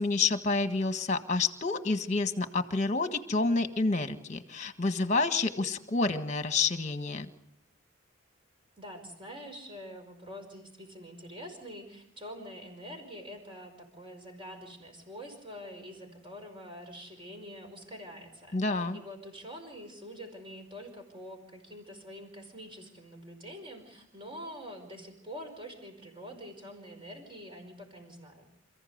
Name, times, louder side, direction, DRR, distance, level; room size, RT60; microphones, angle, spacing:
voice 1, 0.0-7.3 18.5-19.0, left 3 dB, 35° left, 8 dB, 1.5 m, -29 dB
voice 2, 8.8-28.4, equal, 25° right, 4 dB, 5.1 m, -45 dB
29.0 x 15.0 x 8.1 m, 0.77 s
head